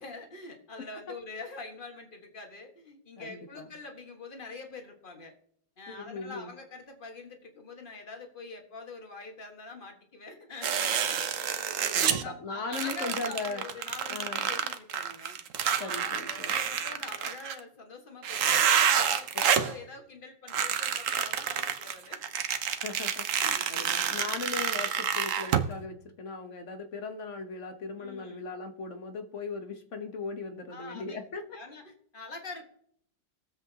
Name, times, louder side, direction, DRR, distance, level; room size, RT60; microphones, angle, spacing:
voice 1, 0.0-5.3 5.8-11.2 11.9-15.4 15.7-18.7 19.0-22.2 23.4-23.6 24.2-24.4 28.0-28.5 30.7-31.2 31.5-32.6, left 3 dB, 30° left, 4 dB, 1.6 m, -45 dB
voice 2, 3.2-3.7 5.9-6.5 11.9-13.6 14.1-14.5 15.8-16.5 22.8-23.2 23.7-31.6, left 3 dB, 50° left, 7 dB, 1.1 m, -38 dB
sound 1, 10.6-12.2 12.7-17.6 18.2-19.7 20.5-25.7, right 8 dB, 55° right, 1.0 m, -28 dB
21.5 x 7.8 x 2.8 m, 0.66 s
omnidirectional pair, 1.9 m